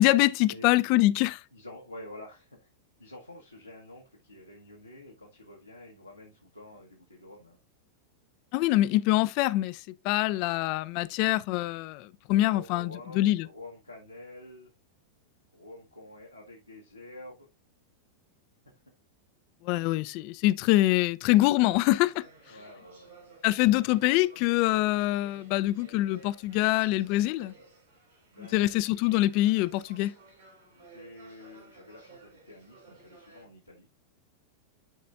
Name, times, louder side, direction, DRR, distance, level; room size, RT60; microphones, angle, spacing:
voice 1, 0.0-1.4 8.5-9.8 10.0-13.5 19.6-22.2 23.4-27.5 28.5-30.1, left 16 dB, 45° left, 0.4 m, -24 dB
voice 2, 1.5-2.7 3.0-7.6 12.4-14.7 15.5-17.5 22.5-23.7 28.3-28.9 30.7-33.9, left 1 dB, 85° left, 1.2 m, -48 dB
sound 1, 21.5-33.5, right 3 dB, 70° right, 3.6 m, -56 dB
11.0 x 4.2 x 2.4 m
figure-of-eight pair, 90°, 0 cm